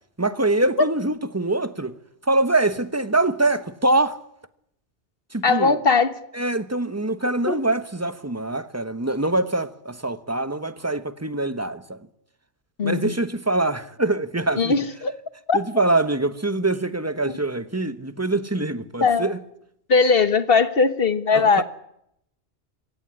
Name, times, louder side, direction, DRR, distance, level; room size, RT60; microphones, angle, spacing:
voice 1, 0.2-1.9 2.3-4.2 5.3-5.8 6.3-12.0 12.8-14.7 15.5-19.4 21.3-21.6, right 2 dB, 15° right, 1.1 m, -24 dB
voice 2, 5.4-6.2 7.5-7.6 12.8-13.2 14.6-15.1 15.5-15.6 19.0-19.3 19.9-21.6, left 4 dB, 55° left, 1.5 m, -19 dB
24.0 x 17.0 x 9.9 m
omnidirectional pair, 1.2 m